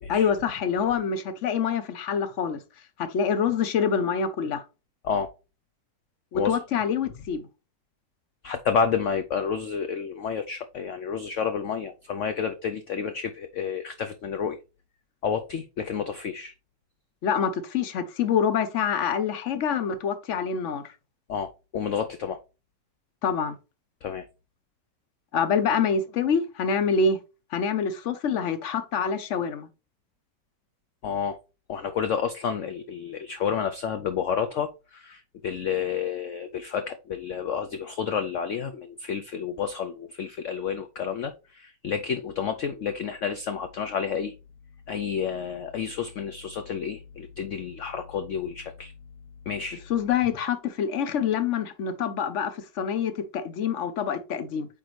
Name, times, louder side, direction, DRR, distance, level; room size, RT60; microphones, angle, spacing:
voice 1, 0.1-2.6 3.0-4.6 6.3-7.5 17.2-20.9 23.2-23.5 25.3-27.2 27.5-29.7 49.9-54.7, left 6 dB, 55° left, 0.9 m, -26 dB
voice 2, 8.4-14.6 15.2-16.5 21.3-22.4 24.0-24.2 31.0-31.4 31.7-44.3 44.9-48.9 49.5-49.8, left 7 dB, 80° left, 0.6 m, -30 dB
8.6 x 3.7 x 3.1 m
omnidirectional pair, 1.9 m